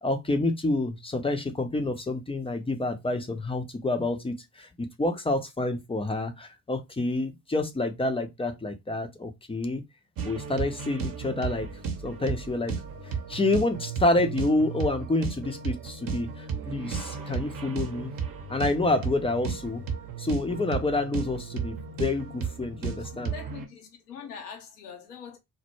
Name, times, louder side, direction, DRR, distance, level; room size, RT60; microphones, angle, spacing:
voice 1, 0.0-9.8 10.2-11.7 12.0-12.8 13.0-18.1 18.5-19.8 20.2-23.3, left 2 dB, 15° left, 0.5 m, -28 dB
sound 1, 10.2-23.7, right 6 dB, 50° right, 0.8 m, -34 dB
voice 2, 23.0-25.4, left 7 dB, 85° left, 0.7 m, -43 dB
2.1 x 2.0 x 3.0 m
hypercardioid pair, 45°, 45 cm